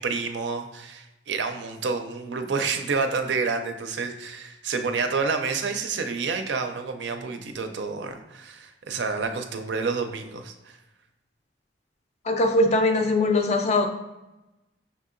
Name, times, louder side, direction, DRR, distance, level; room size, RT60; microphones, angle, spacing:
voice 1, 0.0-10.8, right 4 dB, 75° right, 7 dB, 0.4 m, -29 dB
voice 2, 12.3-13.9, left 2 dB, 40° left, 5 dB, 0.4 m, -21 dB
5.8 x 2.7 x 2.5 m, 0.99 s
head